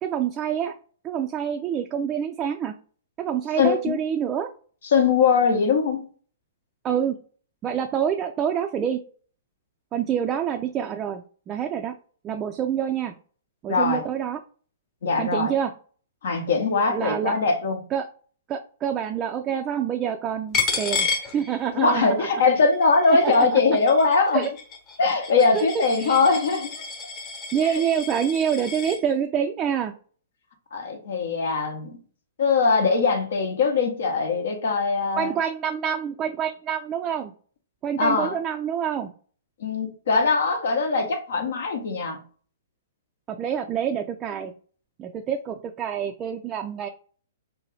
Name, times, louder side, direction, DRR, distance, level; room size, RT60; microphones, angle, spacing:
voice 1, 0.0-0.7 1.0-2.7 3.2-4.5 6.8-7.2 7.6-9.0 9.9-11.9 12.2-13.1 13.6-14.4 15.2-15.7 16.9-17.4 17.9-18.1 18.5-22.3 23.1-23.6 24.3-24.5 25.5-26.2 27.5-29.9 35.1-37.3 37.8-39.1 43.3-44.5 45.0-46.9, right 8 dB, 25° right, 0.3 m, -27 dB
voice 2, 3.6-4.0 4.8-6.1 13.7-14.0 15.0-15.5 16.2-17.8 21.7-24.5 25.0-26.7 27.7-27.8 30.7-32.0 32.4-35.3 38.0-38.4 39.6-42.2, left 4 dB, 65° left, 0.7 m, -21 dB
Coin (dropping), 20.5-22.0 22.4-29.0, left 5 dB, 30° left, 0.9 m, -31 dB
2.7 x 2.2 x 3.2 m
figure-of-eight pair, 115°, 0 cm